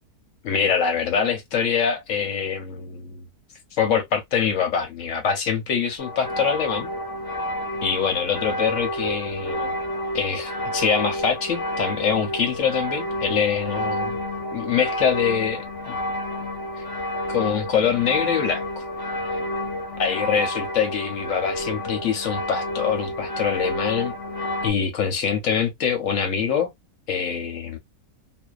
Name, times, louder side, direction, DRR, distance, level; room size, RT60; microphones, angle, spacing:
voice 1, 0.4-3.2 3.8-6.9 7.8-9.8 10.1-14.1 14.5-16.0 16.8-16.9 17.3-18.8 20.0-24.1 24.6-26.7 27.1-27.8, left 7 dB, 65° left, 0.9 m, -24 dB
sound 1, 6.0-24.7, left 1 dB, 10° left, 0.7 m, -29 dB
2.6 x 2.2 x 2.3 m
omnidirectional pair, 1.6 m